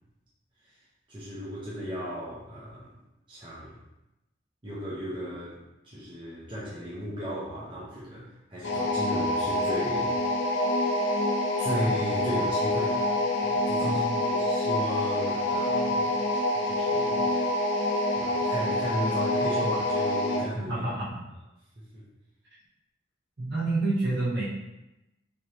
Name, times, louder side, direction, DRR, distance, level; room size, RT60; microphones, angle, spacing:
voice 1, 1.1-3.0 3.3-3.8 4.6-10.2 10.5-11.3 11.6-13.1 13.4-16.2 16.6-17.3 18.1-20.8 21.8-22.1, equal, 25° right, -9 dB, 0.7 m, -36 dB
sound 1, 8.6-20.5, left 1 dB, 75° left, 0.5 m, -26 dB
voice 2, 13.8-14.2 20.5-21.2 23.4-24.4, right 2 dB, 65° right, -8 dB, 1.4 m, -29 dB
3.3 x 2.9 x 2.8 m, 0.95 s
head